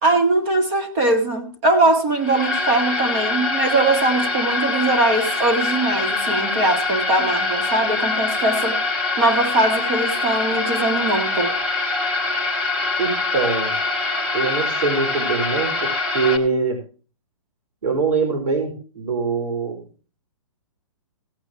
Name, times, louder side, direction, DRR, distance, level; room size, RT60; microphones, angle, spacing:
voice 1, 0.0-11.5, right 2 dB, 25° right, 1.8 m, -21 dB
sound 1, 2.2-16.4, left 3 dB, 5° right, 1.3 m, -24 dB
voice 2, 13.0-13.7 14.3-16.8 17.8-19.8, right 4 dB, 85° right, 4.7 m, -23 dB
17.5 x 8.7 x 3.3 m
hypercardioid pair, 175°, 18 cm